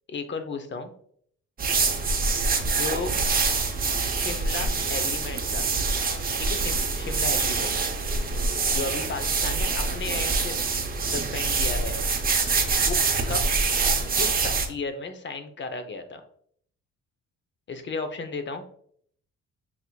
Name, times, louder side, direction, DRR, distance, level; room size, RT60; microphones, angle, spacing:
voice 1, 0.1-0.9 2.6-3.1 4.1-5.7 6.4-7.8 8.7-10.5 11.0-12.0 12.8-13.0 13.3-13.4 14.1-16.2 17.7-18.6, left 4 dB, 40° left, 7 dB, 0.6 m, -34 dB
sound 1, 1.6-14.7, right 4 dB, 30° right, 0.7 m, -25 dB
6.0 x 2.7 x 2.2 m, 0.63 s
cardioid pair, 90°, 30 cm